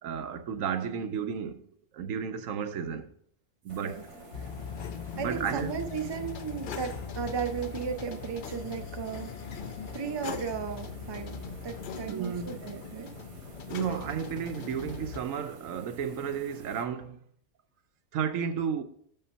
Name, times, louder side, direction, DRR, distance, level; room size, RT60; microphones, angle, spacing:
voice 1, 0.0-1.7 1.9-3.1 3.6-4.0 5.1-5.7 12.1-12.5 13.7-17.2 18.1-18.8, right 7 dB, 70° right, 1.0 m, -32 dB
sound 1, 3.6-16.8, right 5 dB, 90° right, 1.6 m, -50 dB
sound 2, 3.7-10.3, left 3 dB, 60° left, 1.0 m, -53 dB
sound 3, 4.3-15.2, left 6 dB, 80° left, 0.4 m, -40 dB
voice 2, 5.2-9.3 9.9-11.3 11.6-13.1, right 6 dB, 35° right, 0.4 m, -35 dB
6.4 x 5.6 x 5.4 m
omnidirectional pair, 1.5 m